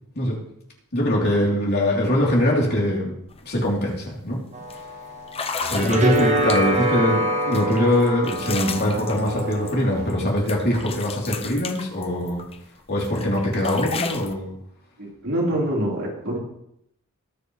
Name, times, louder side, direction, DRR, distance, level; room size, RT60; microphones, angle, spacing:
voice 1, 0.9-3.1 3.4-4.4 5.7-12.4 12.9-14.6, left 1 dB, 50° left, -3 dB, 3.4 m, -22 dB
sound 1, 3.3-3.4 3.8-4.1 4.7-4.8 5.3-6.9 7.5-10.2 10.5-12.6 13.0-14.3, left 5 dB, 25° left, 0.8 m, -33 dB
sound 2, 4.5-10.1, right 1 dB, 35° right, 1.5 m, -25 dB
voice 2, 15.0-16.4, right 1 dB, 65° right, -4 dB, 4.1 m, -25 dB
19.5 x 7.2 x 3.3 m, 0.76 s
head